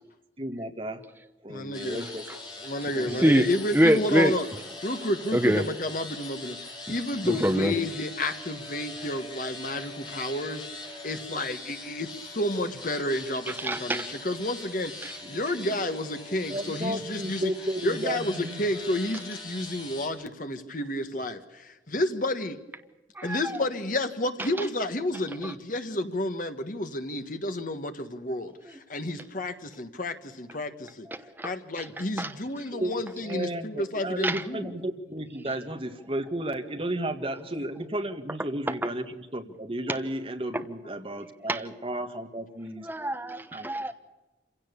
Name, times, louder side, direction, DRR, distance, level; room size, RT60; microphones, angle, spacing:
voice 1, 0.4-1.0 1.4-2.2 2.9-3.3 15.6-15.8 16.5-18.7 32.7-32.9 33.2-42.9 43.5-43.7, right 1 dB, 30° right, 5 dB, 1.8 m, -33 dB
voice 2, 1.5-2.1 2.6-4.5 4.8-6.6 6.9-10.7 11.0-14.9 15.3-17.5 17.8-22.6 23.2-31.1 31.4-34.8, left 1 dB, 45° left, 8 dB, 1.5 m, -30 dB
sound 1, 1.7-20.1, left 2 dB, 25° left, 4.4 m, -42 dB
voice 3, 3.7-4.3 5.3-5.6 7.2-7.7 13.5-14.1 15.0-15.1 23.2-23.5 25.4-25.5 31.1-31.5 32.2-32.3 34.2-34.4 40.5-40.6 41.5-41.6 42.8-43.9, right 1 dB, 10° right, 7 dB, 1.0 m, -24 dB
26.5 x 17.0 x 6.9 m, 1.1 s
head